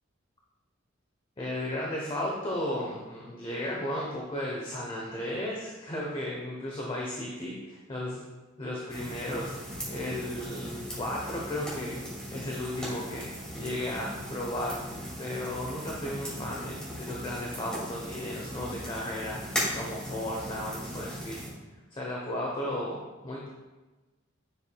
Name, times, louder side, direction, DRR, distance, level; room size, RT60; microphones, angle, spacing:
voice 1, 1.4-8.2 8.6-9.5 9.9-12.0 12.3-13.3 13.5-14.8 15.2-21.4 21.9-23.0 23.2-23.5, left 1 dB, 25° left, -3 dB, 0.9 m, -34 dB
sound 1, 8.9-21.5, equal, 5° left, 2.2 m, -38 dB
10.0 x 6.3 x 2.3 m, 1.2 s
head